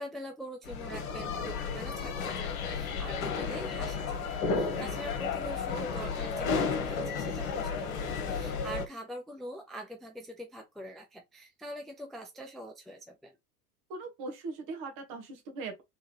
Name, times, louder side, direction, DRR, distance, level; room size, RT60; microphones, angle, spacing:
voice 1, 0.0-4.3 4.5-8.0 8.2-13.4, equal, ahead, 0.5 m, -44 dB
sound 1, 0.7-8.9, left 5 dB, 60° left, 1.3 m, -33 dB
voice 2, 13.9-15.8, right 3 dB, 45° right, 1.6 m, -40 dB
3.8 x 3.6 x 2.9 m
figure-of-eight pair, 70°, 47 cm